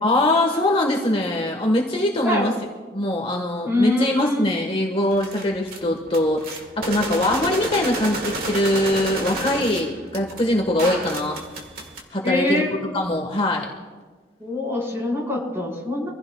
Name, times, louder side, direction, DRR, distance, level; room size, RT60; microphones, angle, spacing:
voice 1, 0.0-2.5 2.9-11.4 12.1-12.6 12.9-13.7, left 1 dB, 30° left, 1 dB, 1.4 m, -22 dB
voice 2, 3.6-4.5 12.2-12.7 14.4-16.1, left 2 dB, 15° right, -3 dB, 4.4 m, -24 dB
sound 1, 5.1-5.8 6.1-12.0, right 2 dB, 55° right, 1.9 m, -30 dB
26.0 x 15.5 x 2.3 m, 1.3 s
head